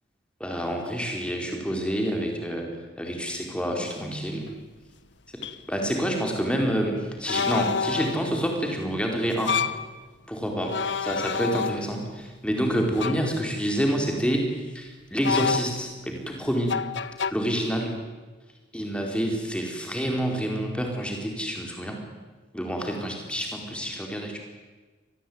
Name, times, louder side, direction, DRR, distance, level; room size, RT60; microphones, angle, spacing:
voice 1, 0.4-2.7 3.0-4.4 5.7-9.6 10.3-16.8 17.3-18.0 18.7-22.0 22.5-24.4, equal, 5° left, 2 dB, 4.4 m, -28 dB
sound 1, 4.5-4.6 5.4-5.6 7.3-8.3 9.3-9.9 10.6-12.1 13.0-13.3 15.2-16.0 16.7-17.3, left 6 dB, 70° left, 1.0 m, -28 dB
25.0 x 19.5 x 9.5 m, 1.3 s
head